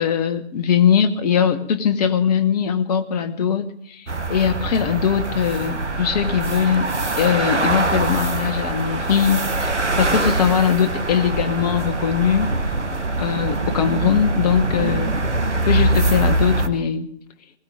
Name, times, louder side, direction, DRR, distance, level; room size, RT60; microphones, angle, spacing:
voice 1, 0.0-6.9 7.2-12.5 13.2-15.1 15.5-17.1, left 8 dB, 35° left, 11 dB, 1.2 m, -21 dB
sound 1, 4.1-16.7, right 2 dB, 85° right, 1.4 m, -23 dB
20.5 x 16.5 x 3.7 m, 0.68 s
figure-of-eight pair, 130°, 34 cm